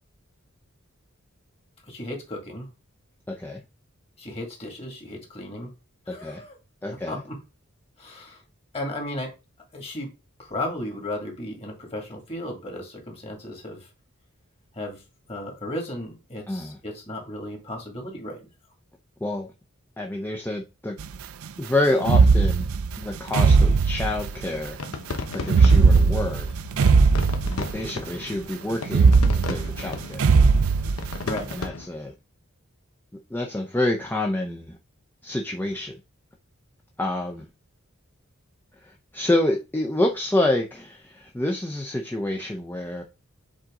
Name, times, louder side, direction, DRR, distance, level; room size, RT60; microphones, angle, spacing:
voice 1, 1.9-2.7 4.2-5.7 6.1-6.6 7.1-7.4 8.0-8.4 8.7-9.3 9.7-10.1 10.4-13.9 14.7-15.0 15.3-18.5 31.2-31.5, left 1 dB, 30° left, 2.1 m, -35 dB
voice 2, 3.3-3.6 6.1-6.4 6.8-7.2 16.5-16.8 19.2-19.5 20.0-21.0 21.6-22.7 23.0-24.8 25.3-26.5 27.4-30.3 31.5-32.1 33.3-34.8 35.2-36.0 37.0-37.5 38.8-43.0, left 1 dB, 10° left, 0.6 m, -27 dB
sound 1, 21.0-21.1 22.0-24.6 25.4-28.0 28.3-28.4 28.9-31.4, right 4 dB, 85° right, 0.4 m, -19 dB
sound 2, 24.3-31.9, left 3 dB, 90° left, 0.9 m, -35 dB
7.5 x 4.0 x 3.7 m
head